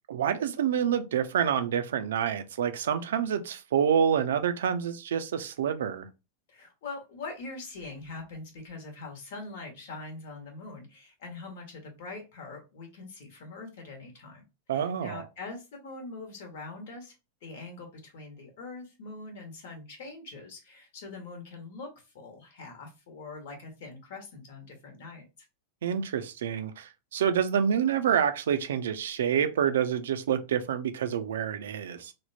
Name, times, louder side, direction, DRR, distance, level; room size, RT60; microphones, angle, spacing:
voice 1, 0.1-6.1 14.7-15.2 25.8-32.1, right 8 dB, 60° right, 0.4 m, -27 dB
voice 2, 6.5-14.4 14.7-17.2 17.4-25.2, left 3 dB, 55° left, 1.1 m, -43 dB
3.4 x 2.1 x 2.6 m
figure-of-eight pair, 90°, 0 cm